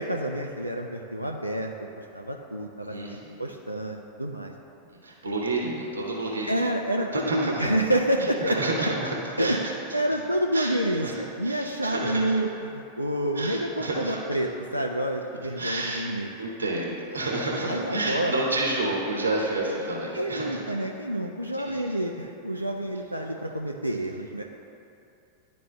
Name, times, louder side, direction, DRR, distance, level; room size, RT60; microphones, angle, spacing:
voice 1, 0.0-4.5 6.4-8.6 8.9-9.0 9.4-16.3 17.6-18.4 19.6-19.8 20.1-24.4, right 1 dB, 90° right, 1 dB, 0.3 m, -28 dB
voice 2, 2.8-3.4 5.0-6.5 7.1-7.7 8.2-9.6 10.5-10.7 11.0-11.1 11.4-12.2 13.3-14.2 15.6-16.1 16.4-20.6 21.5-21.8, right 2 dB, 75° right, -2 dB, 0.9 m, -30 dB
11.5 x 4.2 x 2.2 m, 2.7 s
figure-of-eight pair, 90°, 0 cm